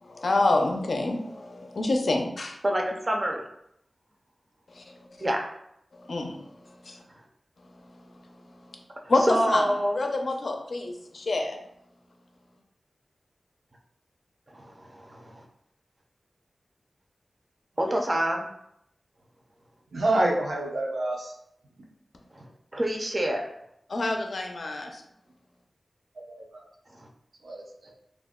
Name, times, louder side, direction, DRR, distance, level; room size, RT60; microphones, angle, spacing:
voice 1, 0.0-2.6 4.7-5.0 5.9-6.4 6.8-7.0 9.1-9.7 9.9-11.6 23.9-25.0, left 2 dB, 70° left, 3 dB, 0.4 m, -27 dB
voice 2, 2.6-3.4 5.2-5.5 9.2-10.0 14.5-15.4 17.8-18.5 22.3-23.5 26.9-27.1, equal, 35° right, 2 dB, 0.5 m, -27 dB
voice 3, 19.9-21.3 26.3-26.6 27.4-27.9, right 1 dB, 85° right, -1 dB, 0.6 m, -28 dB
2.4 x 2.1 x 3.5 m, 0.77 s
wide cardioid pair, 65°, 0 cm